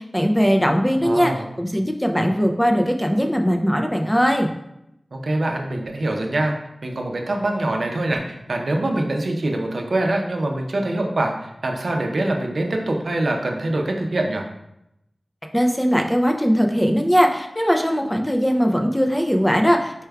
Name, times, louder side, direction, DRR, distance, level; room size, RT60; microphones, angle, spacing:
voice 1, 0.0-1.3 1.6-4.5 15.5-20.1, equal, 10° left, 3 dB, 0.4 m, -19 dB
voice 2, 1.0-1.5 5.1-6.5 6.8-14.4, right 1 dB, 70° right, 2 dB, 0.5 m, -24 dB
4.5 x 3.3 x 2.3 m, 0.82 s
wide cardioid pair, 85°, 0 cm